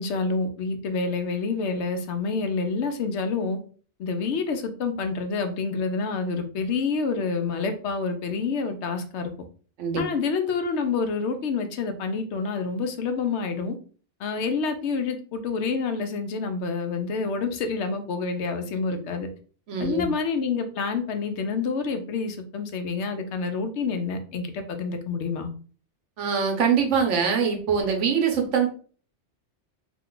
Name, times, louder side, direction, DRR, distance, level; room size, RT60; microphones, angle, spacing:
voice 1, 0.0-3.6 4.0-9.3 10.0-13.8 14.2-19.3 19.8-25.5, left 4 dB, 75° left, 7 dB, 0.9 m, -28 dB
voice 2, 19.7-20.1 26.2-28.7, right 6 dB, 90° right, 2 dB, 1.1 m, -23 dB
2.8 x 2.2 x 3.7 m, 0.41 s
omnidirectional pair, 1.2 m